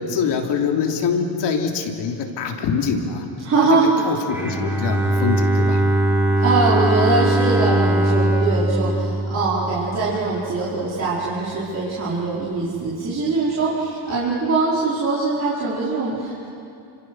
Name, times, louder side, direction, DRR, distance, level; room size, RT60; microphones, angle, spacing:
voice 1, 0.0-3.3 3.7-3.8 4.0-5.8, left 6 dB, 55° left, 2 dB, 3.4 m, -24 dB
voice 2, 3.4-3.9 6.4-16.5, right 3 dB, 30° right, -8 dB, 5.0 m, -22 dB
Bowed string instrument, 4.3-10.3, right 1 dB, 5° right, 3.6 m, -20 dB
29.5 x 27.0 x 6.3 m, 2.6 s
cardioid pair, 135°, 50 cm